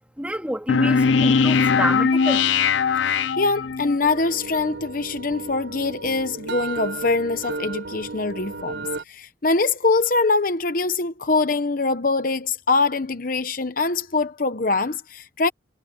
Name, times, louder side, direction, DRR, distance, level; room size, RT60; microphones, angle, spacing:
voice 1, 0.2-2.5, right 1 dB, 5° right, 2.6 m, -28 dB
sound 1, 0.7-4.0, left 5 dB, 80° left, 0.5 m, -20 dB
voice 2, 3.0-15.5, left 3 dB, 50° left, 1.0 m, -23 dB
sound 2, 4.0-9.0, right 3 dB, 80° right, 4.1 m, -34 dB
head